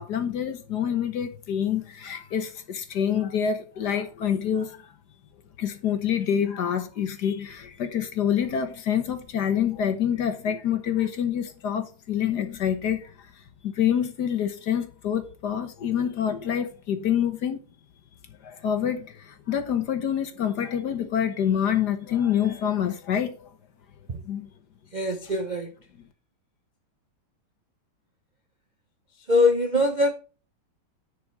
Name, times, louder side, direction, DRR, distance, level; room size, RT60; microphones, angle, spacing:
voice 1, 0.0-4.9 5.6-13.1 13.6-17.6 18.4-23.5 24.2-24.5, left 9 dB, 55° left, 1.5 m, -27 dB
voice 2, 24.9-25.7 29.3-30.1, left 2 dB, 60° right, 0.4 m, -22 dB
10.5 x 5.1 x 4.7 m
omnidirectional pair, 2.3 m